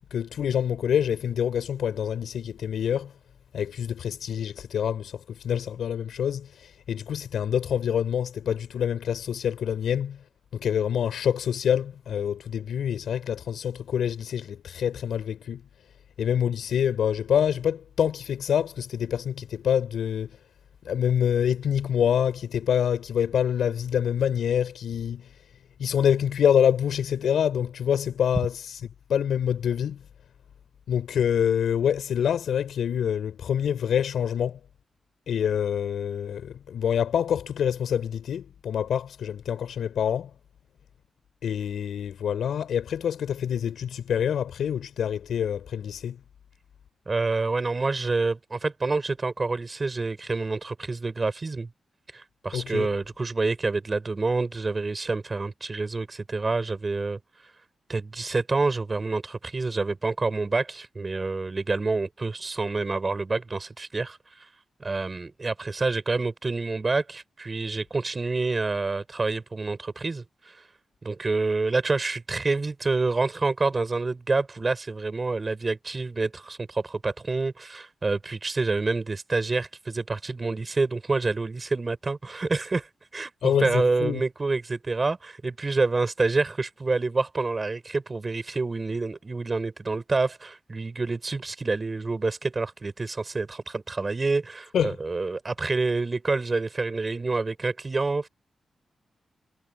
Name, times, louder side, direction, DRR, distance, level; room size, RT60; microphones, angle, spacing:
voice 1, 0.1-3.1 3.5-10.2 10.5-15.6 16.2-20.4 20.8-25.3 25.8-28.6 29.1-30.0 30.9-34.6 35.3-40.3 41.4-46.2 52.5-52.9 83.4-84.2 94.7-95.0, left 8 dB, 85° left, 5.5 m, -26 dB
voice 2, 47.1-51.7 52.1-57.2 57.9-64.5 64.8-70.7 71.0-98.3, right 3 dB, 35° right, 5.3 m, -27 dB
cardioid pair, 65°, 0 cm